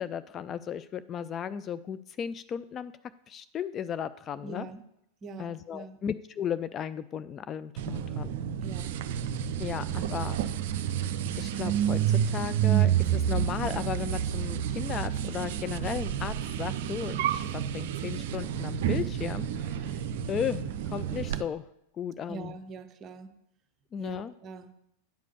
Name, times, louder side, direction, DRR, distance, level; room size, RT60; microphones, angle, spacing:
voice 1, 0.0-2.9 3.3-4.7 5.4-8.4 9.6-10.4 11.4-19.9 20.3-21.6 22.0-22.5 23.9-24.3, left 8 dB, 25° left, 13 dB, 0.3 m, -35 dB
voice 2, 4.4-4.8 5.2-6.0 8.6-9.0 22.3-23.3 24.0-24.7, right 3 dB, 30° right, 10 dB, 0.8 m, -43 dB
sound 1, 7.8-21.4, right 10 dB, 55° right, 0.5 m, -29 dB
9.0 x 5.0 x 6.6 m, 0.77 s
figure-of-eight pair, 90°, 0 cm